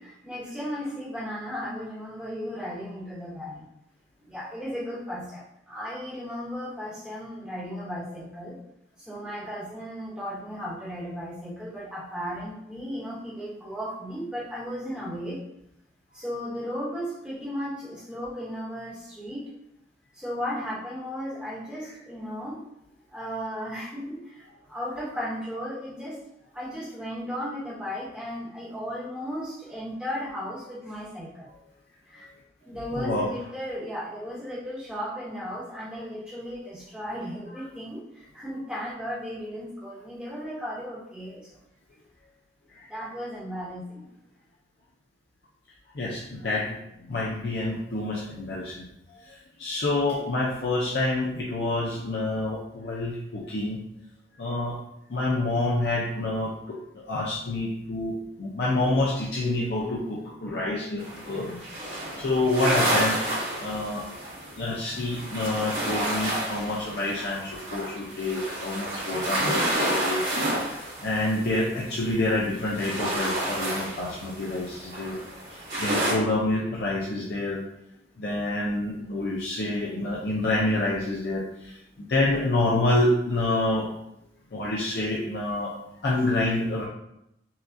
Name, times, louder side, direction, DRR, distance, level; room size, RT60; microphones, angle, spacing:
voice 1, 0.0-3.7 4.2-8.6 9.0-15.4 16.1-19.4 20.1-22.6 23.1-26.2 26.5-31.5 32.1-32.3 32.6-41.6 42.9-44.1, equal, 5° right, -8 dB, 1.1 m, -35 dB
voice 2, 32.9-33.3 37.6-37.7 46.0-46.7 47.1-48.7 49.6-53.8 54.4-54.8 55.1-61.6 62.2-63.2 63.6-64.1 64.6-69.5 69.8-70.2 71.0-75.2 75.8-77.6 78.2-81.4 82.1-83.9 84.5-85.7 86.0-86.8, left 2 dB, 60° left, -5 dB, 0.6 m, -27 dB
sound 1, 61.0-72.2 72.6-76.1, right 1 dB, 70° right, 1.5 m, -30 dB
5.6 x 2.4 x 2.6 m, 0.81 s
head